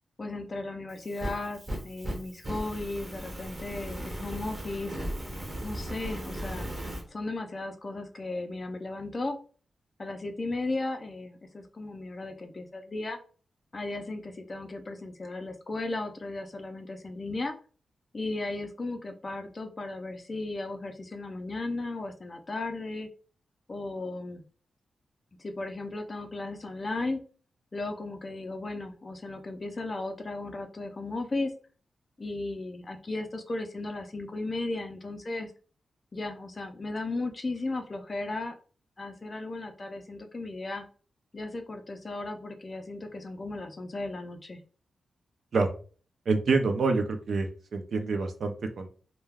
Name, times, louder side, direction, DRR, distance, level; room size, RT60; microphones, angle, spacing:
voice 1, 0.2-5.0 5.6-6.7 7.1-9.4 10.0-13.2 13.7-17.6 18.1-23.1 23.7-24.4 25.4-27.2 27.7-31.5 32.2-35.5 36.1-38.6 39.0-40.8 41.3-44.6, left 2 dB, 30° left, 6 dB, 0.4 m, -35 dB
Fire, 0.9-7.0, right 1 dB, 20° right, 0.6 m, -37 dB
voice 2, 46.3-48.9, right 3 dB, 60° right, 6 dB, 0.4 m, -27 dB
2.2 x 2.2 x 3.3 m, 0.39 s
wide cardioid pair, 145°, 0 cm